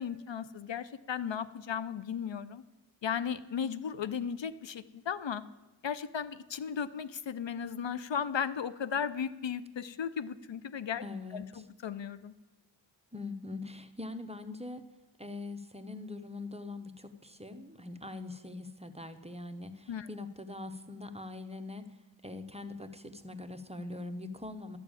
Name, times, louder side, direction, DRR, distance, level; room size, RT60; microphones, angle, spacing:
voice 1, 0.0-2.6 3.0-5.4 5.8-11.0 11.6-12.3 19.9-20.1, left 7 dB, 70° left, 14 dB, 0.6 m, -35 dB
voice 2, 11.0-11.7 13.1-14.8 15.2-24.8, left 2 dB, 15° right, 7 dB, 0.8 m, -42 dB
12.0 x 6.9 x 8.7 m, 1.1 s
wide cardioid pair, 50°, 46 cm